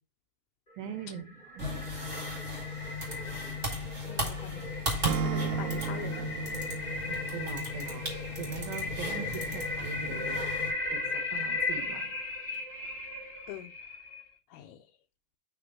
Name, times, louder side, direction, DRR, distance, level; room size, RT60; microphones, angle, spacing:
voice 1, 0.8-1.6 7.1-8.1 8.4-10.6 10.9-12.1, right 8 dB, 70° right, 5 dB, 2.5 m, -41 dB
sound 1, 0.9-14.3, left 2 dB, 30° left, 0.9 m, -37 dB
sound 2, 1.6-10.7, left 2 dB, 25° right, 1.7 m, -37 dB
voice 2, 4.1-4.7 5.2-6.3 13.5-13.7 14.5-14.8, left 13 dB, 80° left, 7 dB, 2.3 m, -43 dB
Acoustic guitar / Strum, 5.0-8.1, right 7 dB, 85° right, 2.7 m, -34 dB
5.9 x 3.8 x 5.8 m, 0.31 s
omnidirectional pair, 4.9 m